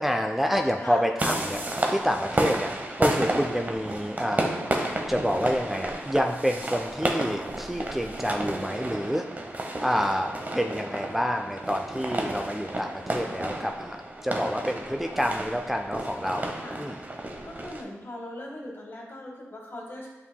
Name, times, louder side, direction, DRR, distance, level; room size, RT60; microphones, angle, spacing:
voice 1, 0.0-2.7 3.0-4.5 4.8-9.2 9.8-10.3 10.5-14.0 14.2-17.0, equal, 5° right, 3 dB, 0.4 m, -28 dB
sound 1, 1.2-17.8, right 1 dB, 35° right, 0.9 m, -31 dB
voice 2, 17.4-20.1, left 1 dB, 50° left, -1 dB, 1.7 m, -40 dB
8.1 x 5.3 x 2.2 m, 1.2 s
cardioid pair, 45°, 5 cm